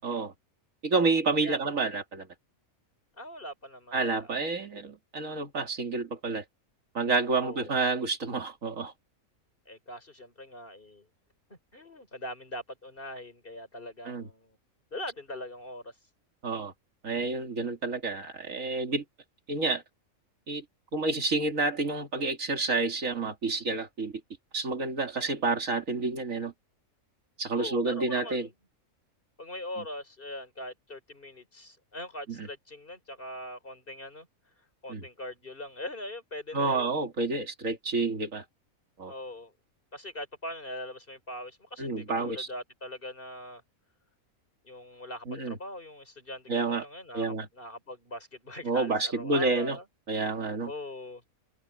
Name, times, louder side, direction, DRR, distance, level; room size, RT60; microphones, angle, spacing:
voice 1, 0.8-2.3 3.9-6.4 6.9-8.9 14.1-14.3 16.4-16.7 17.0-19.0 19.5-19.8 20.5-20.6 20.9-24.1 24.5-26.5 27.4-28.5 32.4-32.5 34.9-35.0 36.5-38.4 39.0-39.1 41.8-42.5 45.3-45.6 46.5-46.8 47.1-47.5 48.6-49.8 50.1-50.7, right 3 dB, 70° right, 2.8 m, -29 dB
voice 2, 3.2-4.3 7.3-7.7 9.7-11.1 11.5-14.6 14.9-15.9 27.5-28.5 29.4-34.3 34.8-37.1 39.1-39.5 39.9-43.6 44.6-49.8 50.6-51.2, left 1 dB, 40° left, 4.8 m, -41 dB
omnidirectional pair, 1.5 m